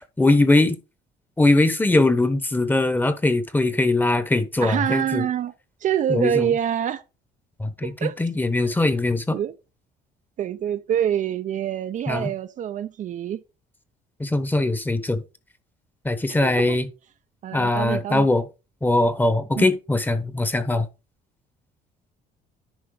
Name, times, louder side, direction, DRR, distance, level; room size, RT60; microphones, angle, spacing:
voice 1, 0.2-0.8 1.4-5.3 6.1-6.5 7.6-9.4 12.1-12.3 14.2-15.2 16.0-16.9 17.5-18.4 18.8-20.9, left 2 dB, 10° left, 0.9 m, -21 dB
voice 2, 4.6-5.5 5.8-7.0 7.8-8.2 8.6-8.8 9.3-9.5 10.4-13.4 16.4-16.8 17.4-18.3 19.6-19.7, right 9 dB, 50° right, 0.5 m, -26 dB
10.5 x 4.3 x 3.8 m
cardioid pair, 110°, 17 cm